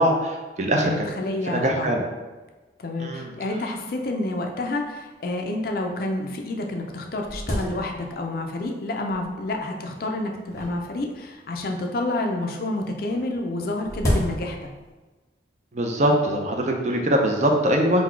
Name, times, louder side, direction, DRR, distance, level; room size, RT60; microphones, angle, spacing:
voice 1, 0.0-1.1 1.5-2.0 3.0-3.3 15.7-18.0, right 1 dB, 40° right, 2 dB, 0.5 m, -22 dB
voice 2, 0.8-2.0 2.8-14.7, left 2 dB, 50° left, 3 dB, 0.4 m, -29 dB
sound 1, 4.3-4.4 4.6-4.7 5.4-5.5 6.1-6.2 6.6-8.4 9.1-9.5 10.5-11.8 13.1-14.9, equal, 15° left, 0.7 m, -31 dB
3.9 x 2.2 x 4.4 m, 1.2 s
head